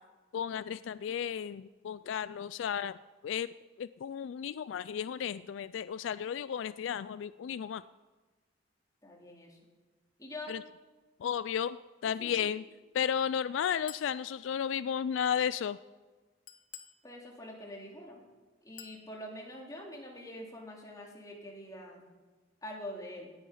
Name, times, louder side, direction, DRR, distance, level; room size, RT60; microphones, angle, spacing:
voice 1, 0.3-3.0 3.2-3.5 3.8-7.8 10.5-10.6 11.2-11.8 12.0-12.6 12.9-15.8, left 8 dB, 75° left, 16 dB, 0.3 m, -33 dB
voice 2, 9.0-9.6 10.2-10.5 12.2-12.5 17.0-18.2 18.6-22.1 22.6-23.3, left 1 dB, 20° left, -1 dB, 2.7 m, -45 dB
Chink clink, 13.9-14.2 16.5-17.0 18.8-19.0, left 11 dB, 45° left, 0.9 m, -48 dB
18.0 x 9.3 x 5.6 m, 1.3 s
head